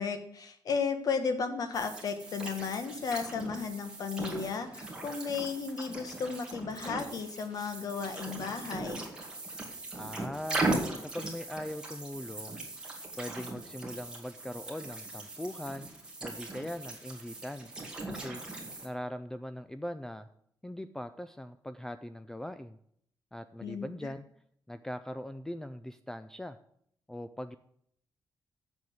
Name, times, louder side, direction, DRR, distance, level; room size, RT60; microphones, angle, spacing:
voice 1, 0.0-9.0 23.6-23.9, left 5 dB, 55° left, 8 dB, 1.3 m, -34 dB
sound 1, 1.7-18.9, right 2 dB, 10° right, 2.2 m, -39 dB
voice 2, 9.9-10.6 11.1-12.7 13.2-15.9 16.2-17.7 18.1-18.4 18.8-20.3 20.6-22.8 23.3-24.2 24.7-26.6 27.1-27.6, left 1 dB, 5° left, 11 dB, 0.4 m, -40 dB
7.7 x 7.1 x 7.9 m, 0.68 s
wide cardioid pair, 170°, 8 cm